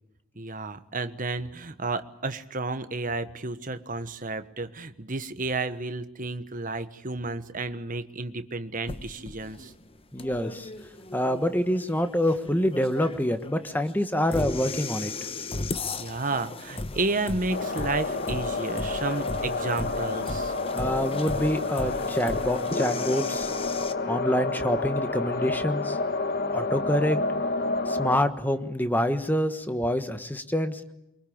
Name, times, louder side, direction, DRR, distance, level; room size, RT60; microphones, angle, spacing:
voice 1, 0.4-9.7 16.0-20.5, right 3 dB, 40° right, 10 dB, 1.3 m, -32 dB
sound 1, 8.9-23.9, left 2 dB, 25° left, 1.0 m, -36 dB
voice 2, 10.1-10.7 11.1-15.1 20.7-23.5 24.1-26.0 26.5-27.2 27.9-30.9, left 1 dB, 10° left, 9 dB, 1.3 m, -26 dB
sound 2, 17.5-28.2, left 3 dB, 50° left, 1.4 m, -29 dB
23.5 x 23.5 x 8.7 m, 0.88 s
head